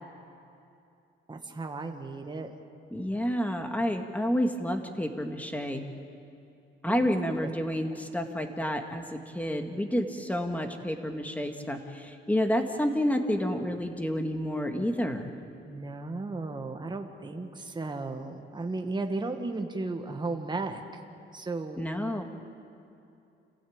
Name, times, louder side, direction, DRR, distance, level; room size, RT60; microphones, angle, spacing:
voice 1, 1.3-2.5 6.9-7.1 15.7-20.8 21.3-21.8, right 3 dB, 20° right, 4 dB, 1.6 m, -35 dB
voice 2, 2.9-5.8 6.8-15.3 21.8-22.2, equal, 5° left, 5 dB, 1.8 m, -29 dB
27.0 x 16.5 x 8.7 m, 2.6 s
cardioid pair, 125°, 21 cm